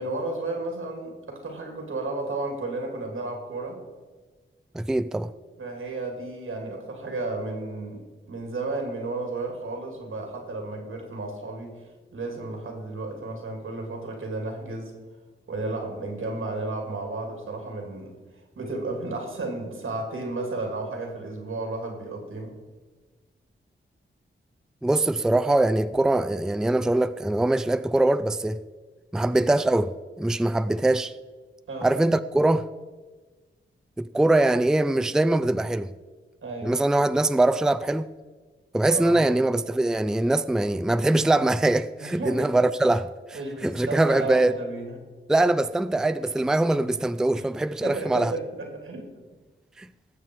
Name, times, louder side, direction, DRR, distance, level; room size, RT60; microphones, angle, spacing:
voice 1, 0.0-3.8 5.6-11.8 12.1-14.9 15.5-18.1 18.6-22.6 31.7-32.0 36.4-36.8 38.9-39.5 42.0-42.5 43.3-45.0 47.3-47.4 47.8-49.1, right 2 dB, 90° right, 3.0 m, -33 dB
voice 2, 4.7-5.3 24.8-28.6 29.1-31.1 31.8-32.7 34.0-35.9 36.6-38.1 38.7-44.5 45.3-48.3 49.8-49.9, right 2 dB, 5° right, 0.4 m, -23 dB
18.5 x 7.4 x 4.7 m
wide cardioid pair, 100°, 21 cm